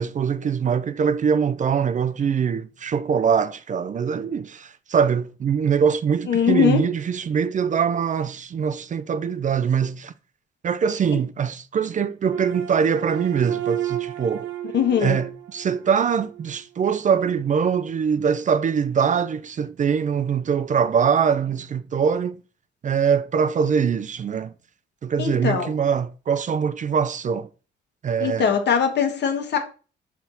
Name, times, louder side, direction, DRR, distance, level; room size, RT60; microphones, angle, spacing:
voice 1, 0.0-10.1 10.6-14.5 15.0-22.4 22.8-24.5 25.0-27.5 28.0-28.5, right 7 dB, 40° right, 0.4 m, -23 dB
voice 2, 6.3-6.8 14.7-15.2 25.2-25.7 28.2-29.6, left 7 dB, 60° left, 1.4 m, -21 dB
sound 1, 12.3-16.6, right 13 dB, 75° right, 0.8 m, -32 dB
5.7 x 4.2 x 3.9 m
cardioid pair, 90°, 20 cm